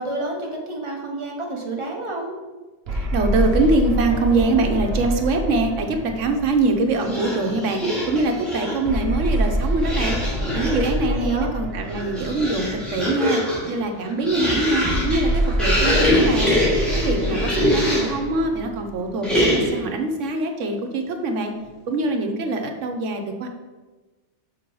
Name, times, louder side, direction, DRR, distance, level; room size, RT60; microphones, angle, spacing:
voice 1, 0.0-2.4 11.1-11.5 17.3-18.2, right 2 dB, 25° right, 0 dB, 1.0 m, -30 dB
sound 1, 2.9-7.4 8.9-13.2 14.9-19.4, right 1 dB, 60° right, 1.2 m, -26 dB
voice 2, 2.9-7.8 8.1-10.2 10.5-13.4 13.7-16.6 17.0-21.5 21.9-23.5, right 2 dB, 90° right, 4 dB, 1.2 m, -23 dB
sound 2, 7.0-8.9 9.8-11.0 11.7-18.2 19.2-19.9, left 1 dB, ahead, 1.9 m, -24 dB
6.0 x 4.5 x 4.6 m, 1.2 s
omnidirectional pair, 1.2 m